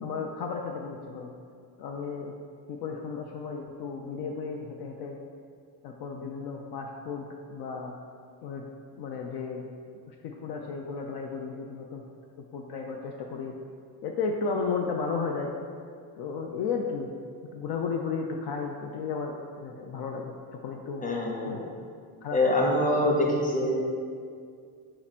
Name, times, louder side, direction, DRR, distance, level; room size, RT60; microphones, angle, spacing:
voice 1, 0.0-1.3 1.8-2.3 2.7-5.2 5.8-7.9 8.4-8.6 9.0-9.6 10.1-12.0 12.5-13.5 14.0-15.5 16.2-17.1 17.5-21.0 21.5-21.7 22.2-22.4, left 5 dB, 60° left, 1 dB, 0.5 m, -34 dB
voice 2, 21.0-21.6 22.3-23.7, left 1 dB, 15° left, -2 dB, 0.8 m, -25 dB
4.2 x 2.9 x 4.1 m, 2.2 s
cardioid pair, 100°, 45 cm